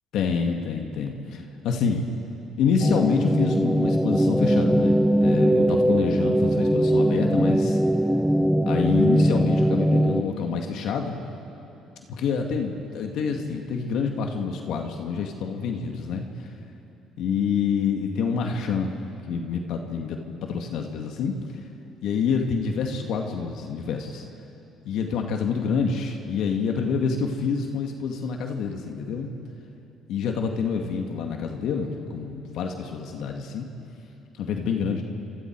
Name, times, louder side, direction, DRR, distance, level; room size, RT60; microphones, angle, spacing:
voice 1, 0.1-2.1 2.6-7.8 8.6-11.2 12.1-16.5 17.2-19.0 19.3-21.4 22.0-24.3 24.9-29.3 30.1-33.7 34.4-35.0, left 5 dB, 70° left, 3 dB, 2.0 m, -27 dB
sound 1, 2.8-10.2, equal, ahead, 0.7 m, -21 dB
28.0 x 26.0 x 4.7 m, 2.8 s
cardioid pair, 95°, 0 cm